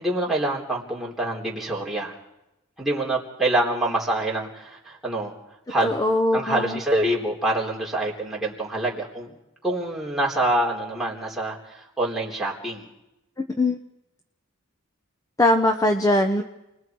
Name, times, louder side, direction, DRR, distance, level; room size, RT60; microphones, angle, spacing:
voice 1, 0.0-2.2 2.8-5.3 5.7-6.0 6.3-9.3 9.6-12.9, right 1 dB, ahead, -4 dB, 3.9 m, -26 dB
voice 2, 5.8-6.8 13.4-13.8 15.4-16.4, left 1 dB, 15° left, 5 dB, 1.0 m, -21 dB
29.0 x 21.0 x 4.7 m, 0.93 s
head